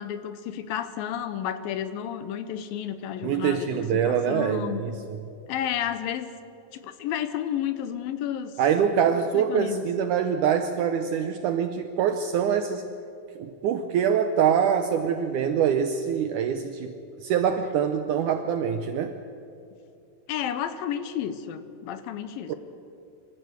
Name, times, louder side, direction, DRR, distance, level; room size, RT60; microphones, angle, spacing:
voice 1, 0.0-4.8 5.5-6.3 6.7-8.5 9.3-9.9 20.3-22.5, left 9 dB, 75° left, 11 dB, 2.5 m, -31 dB
voice 2, 3.2-5.2 8.6-12.9 13.4-16.9 17.2-19.2 22.5-22.6, right 8 dB, 80° right, 8 dB, 1.8 m, -24 dB
25.0 x 14.0 x 8.1 m, 2.6 s
omnidirectional pair, 4.4 m